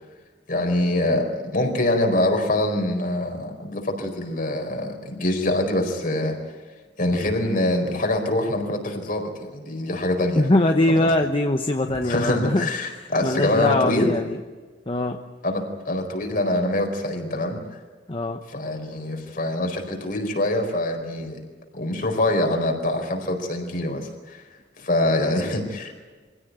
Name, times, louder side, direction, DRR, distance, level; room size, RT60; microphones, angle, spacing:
voice 1, 0.5-6.4 7.0-10.4 10.9-11.1 12.0-14.1 15.4-17.6 18.5-21.4 21.7-24.4 24.8-25.9, left 1 dB, 55° left, 4 dB, 4.5 m, -24 dB
voice 2, 10.3-12.7 13.0-14.4 14.9-15.2 18.1-18.4 25.2-25.5, left 1 dB, 30° left, 5 dB, 1.0 m, -22 dB
24.5 x 16.5 x 9.5 m, 1.4 s
head